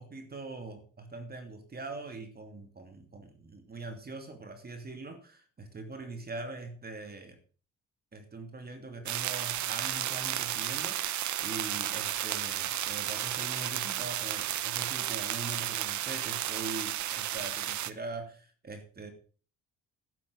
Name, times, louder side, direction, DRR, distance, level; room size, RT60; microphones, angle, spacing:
voice 1, 0.0-7.4 8.1-19.1, right 3 dB, 30° right, 6 dB, 2.7 m, -42 dB
sound 1, 9.1-17.9, right 12 dB, 70° right, 0.9 m, -33 dB
12.0 x 8.8 x 5.2 m, 0.38 s
cardioid pair, 90°, 30 cm